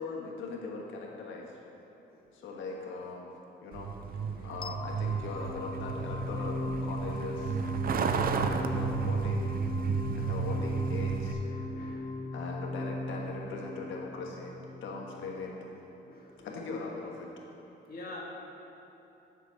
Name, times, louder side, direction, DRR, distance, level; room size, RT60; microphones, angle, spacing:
voice 1, 0.0-1.6 2.3-3.3 3.6-7.6 8.0-9.5 10.1-11.4 12.3-15.7 16.4-17.3, left 3 dB, 75° left, -1 dB, 1.5 m, -40 dB
Truck, 3.7-11.3, right 6 dB, 45° right, 0.5 m, -32 dB
sound 1, 4.6-15.6, left 1 dB, 25° left, 0.3 m, -38 dB
voice 2, 11.4-12.1 16.1-16.5 17.9-18.2, left 2 dB, 50° left, -3 dB, 2.1 m, -47 dB
8.1 x 6.2 x 6.2 m, 3.0 s
cardioid pair, 90°, 20 cm